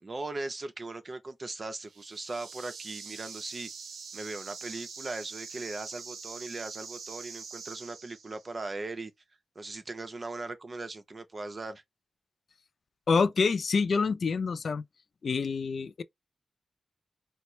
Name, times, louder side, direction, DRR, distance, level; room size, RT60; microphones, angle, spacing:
voice 1, 0.0-3.7 4.1-9.1 9.6-11.8, right 2 dB, 45° right, 0.8 m, -39 dB
sound 1, 1.8-8.6, right 5 dB, 85° right, 0.7 m, -44 dB
voice 2, 13.1-14.8 15.2-16.0, left 5 dB, 70° left, 0.3 m, -27 dB
4.3 x 2.1 x 3.0 m
cardioid pair, 55°, 0 cm